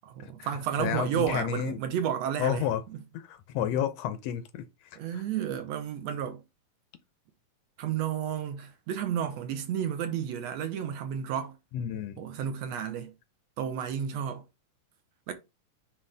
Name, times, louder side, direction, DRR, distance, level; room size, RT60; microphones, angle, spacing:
voice 1, 0.0-2.6 5.0-6.4 7.8-11.6 12.2-13.1 13.6-14.4 15.3-15.4, right 9 dB, 70° right, 2.0 m, -32 dB
voice 2, 0.8-1.8 2.4-2.8 3.1-5.2 11.7-12.2, left 9 dB, 80° left, 1.5 m, -31 dB
9.5 x 3.2 x 3.4 m
omnidirectional pair, 3.5 m